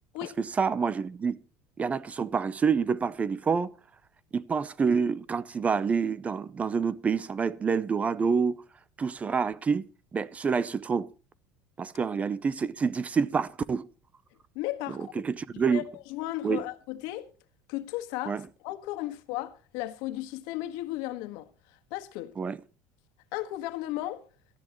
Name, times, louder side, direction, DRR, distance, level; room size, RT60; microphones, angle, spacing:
voice 1, 0.4-1.4 1.8-3.7 4.3-8.6 9.0-9.8 10.1-11.1 11.8-13.9 14.9-15.8 16.4-16.6 18.3-18.4 22.4-22.6, right 5 dB, 20° right, 0.6 m, -27 dB
voice 2, 14.5-15.1 15.5-15.8 16.1-17.3 17.7-22.3 23.3-24.2, left 15 dB, 70° left, 1.6 m, -35 dB
18.0 x 13.0 x 3.1 m
cardioid pair, 160°, 7 cm